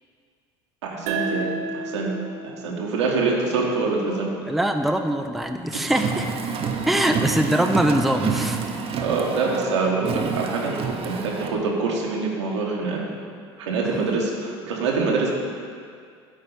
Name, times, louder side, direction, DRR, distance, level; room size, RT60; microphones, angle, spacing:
voice 1, 0.8-2.1 2.4-4.3 9.0-10.8 11.0-13.1 13.6-15.3, right 4 dB, 85° right, -2 dB, 1.5 m, -25 dB
sound 1, 1.1-4.3, right 4 dB, 65° right, 1.0 m, -32 dB
voice 2, 4.4-6.3 6.9-8.6, right 1 dB, ahead, 5 dB, 0.5 m, -22 dB
Car, 5.9-11.5, right 6 dB, 40° right, 0.9 m, -28 dB
8.9 x 3.8 x 7.0 m, 2.2 s
hypercardioid pair, 75°, 14 cm